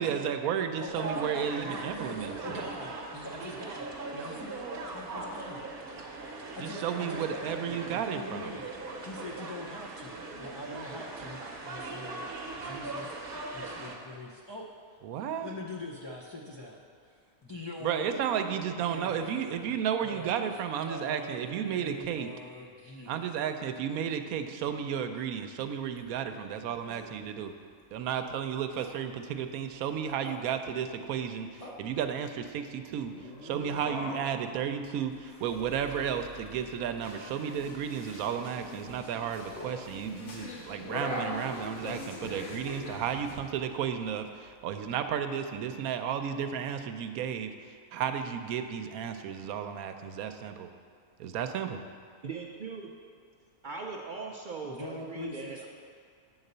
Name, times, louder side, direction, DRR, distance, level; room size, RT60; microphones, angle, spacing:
voice 1, 0.0-2.7 6.6-8.5 15.0-15.5 17.8-22.3 23.1-27.5 27.9-33.1 33.4-47.5 47.9-50.7 51.2-51.8, right 8 dB, 85° right, 8 dB, 1.0 m, -33 dB
voice 2, 0.6-5.6 6.5-13.2 13.5-14.7 15.4-19.8 20.0-20.6 20.8-23.5 54.6-55.7, left 1 dB, 45° left, -4 dB, 0.3 m, -43 dB
sound 1, 0.9-14.0, right 3 dB, 50° right, 1.0 m, -40 dB
sound 2, 25.6-44.9, left 1 dB, 30° left, 1.1 m, -44 dB
sound 3, 37.0-43.3, left 2 dB, 80° left, 1.7 m, -44 dB
voice 3, 52.2-52.9 53.6-55.7, right 4 dB, 65° right, 0 dB, 0.5 m, -40 dB
8.5 x 4.0 x 6.6 m, 2.2 s
omnidirectional pair, 1.5 m